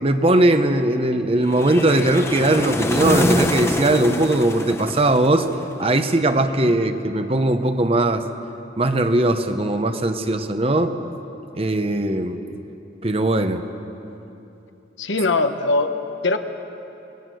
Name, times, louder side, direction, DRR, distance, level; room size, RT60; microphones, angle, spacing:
voice 1, 0.0-5.5 5.8-8.2 8.8-10.9 11.6-12.4 13.0-13.6, right 1 dB, 30° right, 8 dB, 1.0 m, -19 dB
sound 1, 1.5-5.7, left 1 dB, 15° left, 0.9 m, -24 dB
voice 2, 15.0-15.9 16.2-16.4, left 3 dB, 85° left, 7 dB, 1.2 m, -21 dB
27.0 x 19.5 x 6.4 m, 3.0 s
head